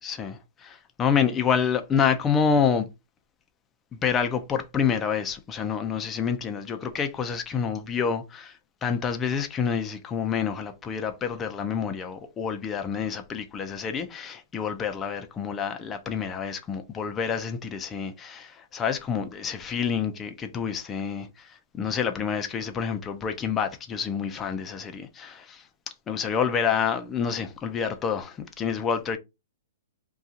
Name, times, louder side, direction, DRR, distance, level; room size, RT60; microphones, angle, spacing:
voice 1, 0.0-2.9 3.9-25.6 26.1-29.2, left 6 dB, 15° left, 0.5 m, -28 dB
2.7 x 2.3 x 3.8 m
hypercardioid pair, 150°, 0 cm